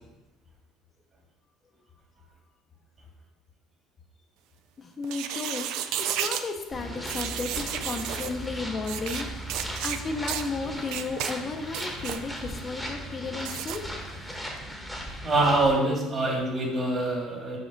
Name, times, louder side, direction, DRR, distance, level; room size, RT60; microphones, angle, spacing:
voice 1, 4.8-13.8, left 4 dB, 35° left, 4 dB, 0.6 m, -34 dB
sound 1, 5.0-6.5 7.1-8.3 8.8-9.2 9.5-10.0 10.3-10.5 10.9-11.3 11.7-12.2 13.4-13.8, right 10 dB, 75° right, 0.4 m, -32 dB
sound 2, 6.7-15.7, equal, ahead, 1.0 m, -37 dB
voice 2, 15.2-17.6, right 2 dB, 35° right, 0 dB, 1.8 m, -25 dB
5.1 x 4.9 x 4.0 m, 1.0 s
supercardioid pair, 95°, 0 cm